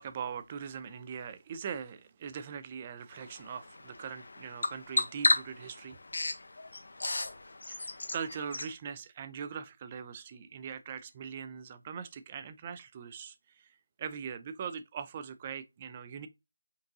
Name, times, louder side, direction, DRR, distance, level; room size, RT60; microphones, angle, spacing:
voice 1, 0.0-6.0 7.7-13.7 14.0-16.3, right 7 dB, 20° right, 0.3 m, -41 dB
Bird vocalization bird call bird song, 3.1-8.7, left 2 dB, 65° left, 0.6 m, -34 dB
5.3 x 2.6 x 2.6 m
figure-of-eight pair, 170°, 0 cm